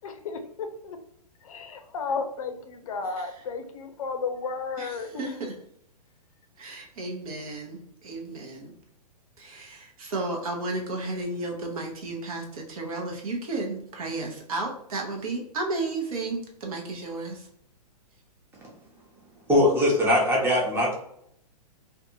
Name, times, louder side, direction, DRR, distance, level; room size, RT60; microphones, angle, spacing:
voice 1, 0.0-0.4 0.9-1.0 1.4-5.3, left 4 dB, 60° left, 6 dB, 0.5 m, -33 dB
voice 2, 4.8-5.5 6.6-8.7 9.4-17.5, right 2 dB, 60° right, 0 dB, 0.8 m, -33 dB
voice 3, 19.5-21.0, left 1 dB, 10° right, -3 dB, 0.8 m, -21 dB
2.6 x 2.3 x 2.6 m, 0.70 s
figure-of-eight pair, 115°, 21 cm